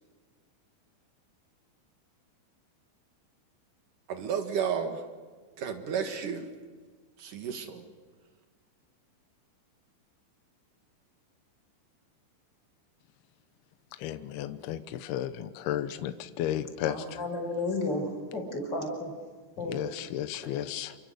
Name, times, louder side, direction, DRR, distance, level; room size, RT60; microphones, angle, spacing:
voice 1, 4.1-5.0 5.6-6.5 7.2-7.9, right 7 dB, 60° right, 6 dB, 2.4 m, -32 dB
voice 2, 14.0-17.2 19.6-21.0, left 11 dB, 80° left, 9 dB, 2.3 m, -34 dB
voice 3, 16.9-18.1 18.3-19.1 19.6-19.9, left 2 dB, 20° left, 1 dB, 5.5 m, -32 dB
28.5 x 24.0 x 6.6 m, 1.5 s
omnidirectional pair, 5.7 m